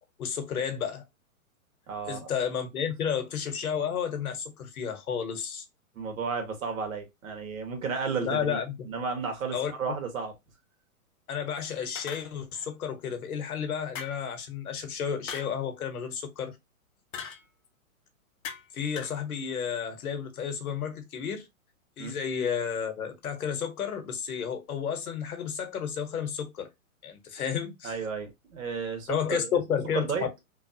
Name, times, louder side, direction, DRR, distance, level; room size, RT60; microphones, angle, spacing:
voice 1, 0.2-1.0 2.1-5.6 8.2-8.7 9.5-9.7 11.3-16.5 18.7-21.5 22.0-26.7 27.0-28.0 29.1-30.1, left 7 dB, 80° left, 1.1 m, -32 dB
voice 2, 1.9-2.3 5.9-8.6 8.8-10.3 22.0-22.1 27.8-29.6 29.9-30.3, right 5 dB, 65° right, 1.4 m, -33 dB
sound 1, 12.0-12.7 14.0-14.4 15.3-15.6 17.1-17.5 18.4-18.7 19.0-19.2, left 7 dB, 60° left, 0.8 m, -40 dB
3.1 x 2.4 x 2.7 m
hypercardioid pair, 155°, 43 cm